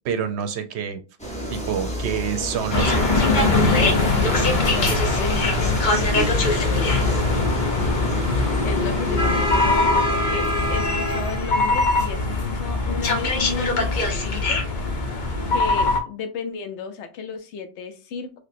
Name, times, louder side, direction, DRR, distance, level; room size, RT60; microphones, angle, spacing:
voice 1, 0.0-1.0 1.5-3.9, right 8 dB, 75° right, 8 dB, 0.8 m, -28 dB
sound 1, 1.2-10.9, equal, 5° left, 0.6 m, -30 dB
sound 2, 2.7-16.0, left 2 dB, 50° left, 0.7 m, -21 dB
voice 2, 4.7-6.2 6.6-7.0 8.6-15.1 15.5-18.4, left 5 dB, 80° left, 8 dB, 0.9 m, -33 dB
3.3 x 2.9 x 2.5 m, 0.33 s
omnidirectional pair, 1.2 m